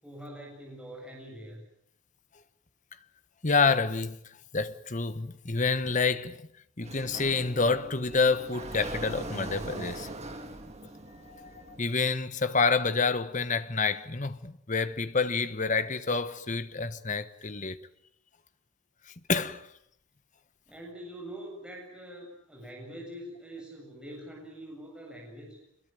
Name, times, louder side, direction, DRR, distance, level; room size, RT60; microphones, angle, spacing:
voice 1, 0.0-1.6 20.7-25.6, right 1 dB, 5° right, 7.9 m, -44 dB
voice 2, 3.4-6.4 6.8-10.1 11.2-17.9 19.1-19.7, left 4 dB, 35° left, 1.3 m, -28 dB
Sliding door, 6.8-11.8, right 2 dB, 30° right, 2.7 m, -41 dB
26.0 x 22.0 x 9.2 m
head